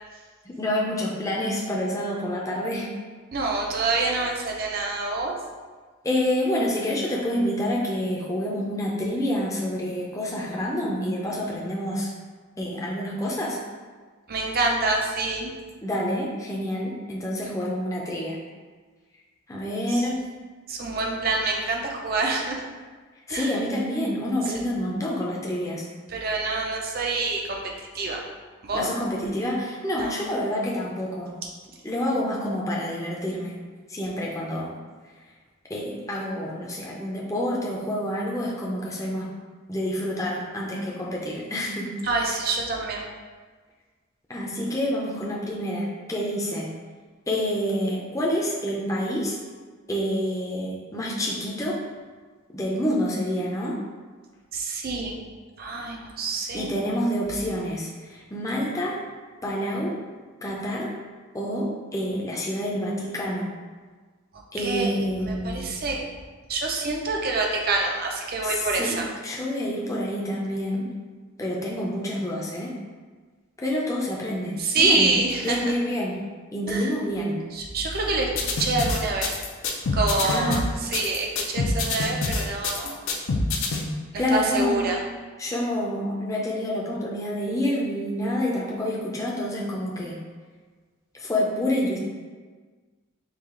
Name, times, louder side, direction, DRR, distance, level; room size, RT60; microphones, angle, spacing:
voice 1, 0.4-2.9 6.0-12.1 12.6-13.6 15.8-18.4 19.5-20.2 23.3-25.9 28.7-31.3 31.8-33.6 33.9-34.8 35.7-39.3 39.7-41.9 42.2-42.3 44.3-46.7 47.3-49.4 49.9-51.8 52.5-53.8 56.5-59.0 59.4-59.9 60.4-60.9 61.3-63.5 64.5-65.8 68.4-70.9 71.4-72.7 73.6-75.1 75.4-76.2 76.5-77.4 80.2-80.7 84.2-84.8 85.4-90.2 91.1-92.0, equal, 15° left, -3 dB, 0.6 m, -28 dB
voice 2, 3.3-5.3 14.3-15.5 19.9-20.0 20.7-22.6 23.3-23.5 26.1-27.6 27.9-28.2 28.6-28.9 30.0-30.1 42.0-43.0 54.5-55.1 55.6-56.7 64.6-64.9 65.3-66.0 66.5-69.0 74.6-75.7 76.7-76.9 77.5-78.3 78.6-79.4 79.9-83.0 84.1-85.0, right 3 dB, 45° right, 0 dB, 0.5 m, -26 dB
sound 1, 78.3-83.8, left 3 dB, 70° left, 0.5 m, -26 dB
4.8 x 2.4 x 3.7 m, 1.5 s
head